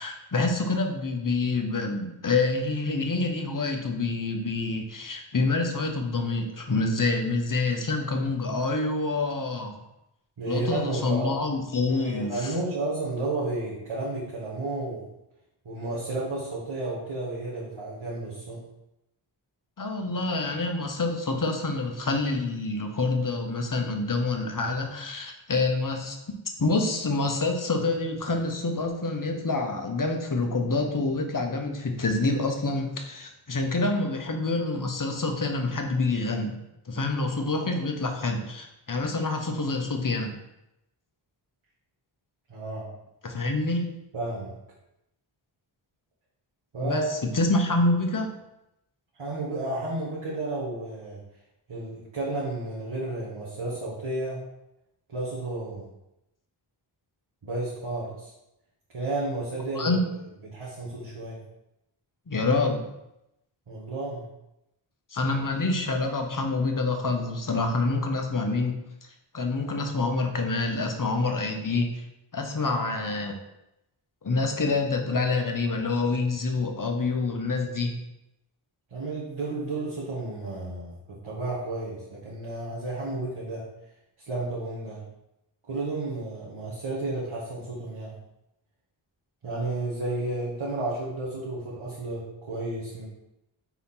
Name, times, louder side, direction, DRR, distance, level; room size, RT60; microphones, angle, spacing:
voice 1, 0.0-9.8 10.5-12.5 19.8-26.2 26.6-36.6 36.9-40.3 43.2-44.0 46.8-48.4 59.7-60.0 62.3-62.9 65.1-68.8 69.3-72.1 72.3-73.4 74.2-78.0, left 3 dB, 40° left, 3 dB, 1.1 m, -27 dB
voice 2, 10.4-11.3 11.9-15.1 15.7-18.6 42.5-42.9 44.1-44.5 46.7-47.2 49.2-51.2 51.7-54.4 55.1-55.9 57.4-58.3 58.9-60.0 60.5-61.4 63.7-64.3 78.9-83.7 84.3-85.0 85.7-88.2 89.4-93.1, right 2 dB, 70° right, -8 dB, 1.8 m, -32 dB
4.6 x 4.2 x 5.7 m, 0.87 s
wide cardioid pair, 60°, 49 cm